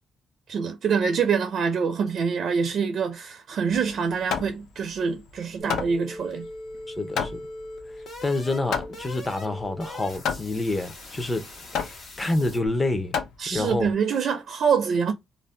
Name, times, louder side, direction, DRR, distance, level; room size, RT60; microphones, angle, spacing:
voice 1, 0.5-6.5 13.4-15.1, right 6 dB, 60° right, 0.4 m, -25 dB
Hammer, 3.7-13.9, left 6 dB, 80° left, 0.5 m, -33 dB
sound 1, 5.6-12.7, left 1 dB, 65° left, 1.2 m, -41 dB
voice 2, 6.9-7.4 8.2-11.4 11.8-13.2 13.5-13.9, left 2 dB, 25° left, 0.6 m, -28 dB
2.5 x 2.1 x 3.2 m
cardioid pair, 90°, 0 cm